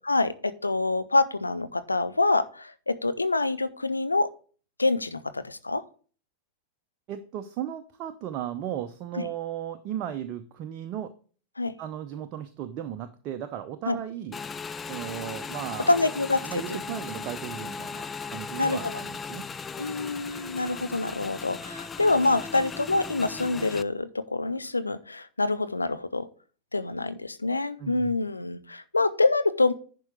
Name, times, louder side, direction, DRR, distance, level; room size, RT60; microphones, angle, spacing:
voice 1, 0.0-4.3 4.8-5.8 9.2-9.3 11.6-11.7 13.9-14.0 15.9-16.4 18.6-18.8 19.8-26.3 26.7-29.7, left 3 dB, 80° left, 10 dB, 0.6 m, -26 dB
voice 2, 7.1-11.1 11.8-14.4 14.9-16.1 16.4-19.5 27.8-28.2, right 10 dB, 40° right, 8 dB, 0.7 m, -36 dB
Motorcycle / Engine, 14.3-23.8, left 5 dB, 15° left, 0.4 m, -37 dB
10.5 x 4.6 x 4.9 m, 0.40 s
figure-of-eight pair, 90°, 0 cm